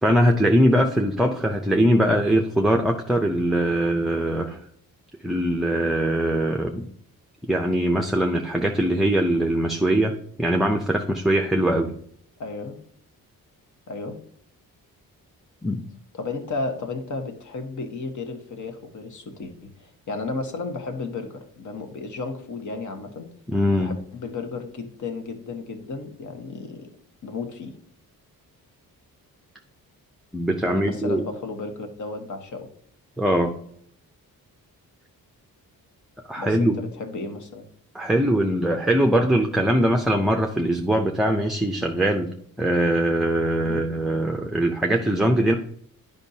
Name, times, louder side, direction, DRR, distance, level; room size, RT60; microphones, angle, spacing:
voice 1, 0.0-4.6 5.2-6.9 7.5-12.0 15.6-15.8 23.5-23.9 30.3-31.2 33.2-33.5 36.3-36.8 37.9-45.5, right 1 dB, ahead, 2 dB, 0.5 m, -22 dB
voice 2, 12.4-12.8 13.9-14.2 16.1-23.3 23.8-26.9 27.2-27.7 30.6-32.7 36.4-37.7 43.6-43.8, left 3 dB, 55° left, 5 dB, 1.2 m, -33 dB
10.5 x 5.3 x 2.7 m, 0.63 s
cardioid pair, 110°, 36 cm